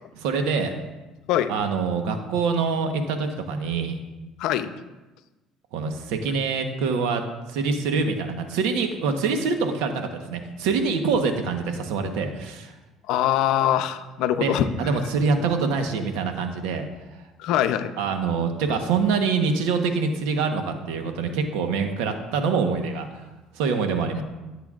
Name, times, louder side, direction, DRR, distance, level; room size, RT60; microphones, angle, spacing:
voice 1, 0.2-0.7 1.5-4.0 5.7-7.2 7.5-12.7 14.4-16.9 18.0-23.1 23.5-24.2, right 5 dB, 85° right, 5 dB, 1.1 m, -25 dB
voice 2, 4.4-4.7 13.1-14.9 15.4-15.5 17.4-17.9, left 11 dB, 75° left, 10 dB, 0.6 m, -23 dB
14.5 x 7.9 x 2.5 m, 1.1 s
supercardioid pair, 95°, 0 cm